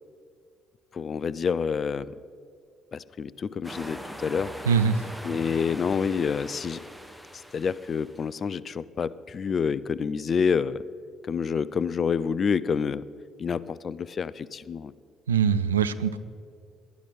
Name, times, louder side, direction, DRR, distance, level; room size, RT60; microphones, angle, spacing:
voice 1, 0.9-2.1 2.9-4.5 5.2-6.8 7.5-10.8 11.2-13.0 13.4-14.9, left 6 dB, 40° left, 18 dB, 0.5 m, -28 dB
sound 1, 3.6-8.4, equal, 5° left, 1.5 m, -41 dB
voice 2, 4.7-5.1 15.3-16.2, right 6 dB, 80° right, 13 dB, 0.4 m, -23 dB
20.5 x 11.5 x 4.0 m, 2.3 s
figure-of-eight pair, 45°, 0 cm